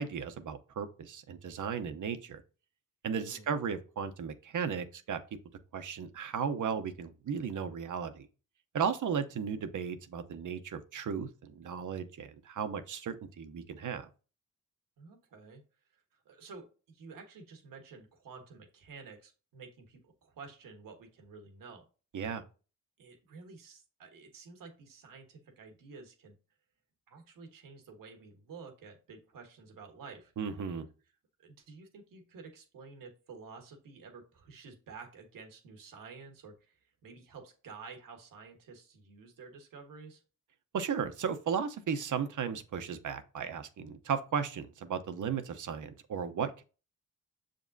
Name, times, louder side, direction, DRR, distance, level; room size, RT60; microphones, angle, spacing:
voice 1, 0.0-2.4 3.0-5.2 5.7-8.3 8.7-14.1 22.1-22.4 30.4-30.9 40.7-46.6, right 6 dB, 65° right, 0.8 m, -35 dB
voice 2, 3.1-3.4 15.0-15.6 15.9-21.8 23.0-26.3 27.1-30.3 31.4-40.2, right 4 dB, 90° right, 1.4 m, -51 dB
6.8 x 5.2 x 2.7 m
cardioid pair, 65°, 32 cm